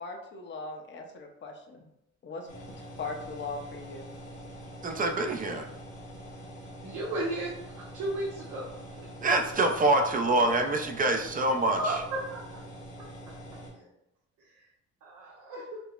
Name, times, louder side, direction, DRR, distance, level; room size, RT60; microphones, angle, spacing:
voice 1, 0.0-1.9 2.2-2.5 3.0-4.1, left 3 dB, 40° left, 2 dB, 0.6 m, -39 dB
sound 1, 2.5-13.7, equal, 75° left, 1.2 m, -45 dB
voice 2, 4.8-5.7 9.2-11.9, right 2 dB, 30° right, 4 dB, 0.5 m, -25 dB
voice 3, 6.8-8.6 8.9-9.0 9.5-9.6 11.8-12.6 13.7-13.8 14.5-14.6 15.0-15.8, right 1 dB, 85° right, -5 dB, 0.9 m, -34 dB
5.2 x 2.0 x 2.4 m, 0.81 s
cardioid pair, 90°, 30 cm